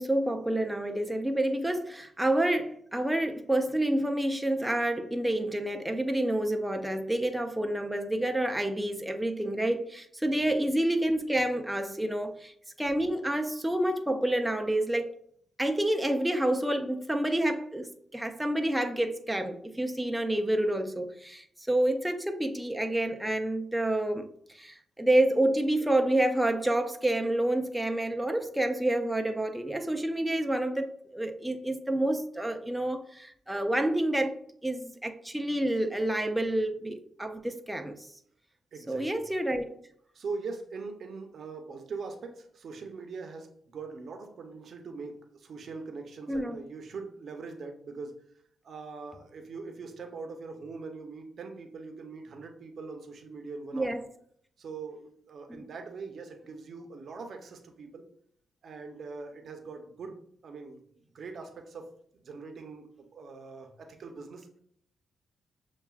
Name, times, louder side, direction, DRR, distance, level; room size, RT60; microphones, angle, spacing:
voice 1, 0.0-15.1 15.6-34.4 34.6-38.1 38.9-39.7 46.3-46.5 53.7-54.0 55.5-55.7, right 1 dB, 5° right, 5 dB, 0.4 m, -28 dB
voice 2, 38.7-39.2 40.1-48.2 48.6-54.0 54.6-58.0 58.6-61.9 62.2-64.5, right 4 dB, 60° right, 4 dB, 0.7 m, -42 dB
6.7 x 2.3 x 2.3 m, 0.66 s
cardioid pair, 75°, 0 cm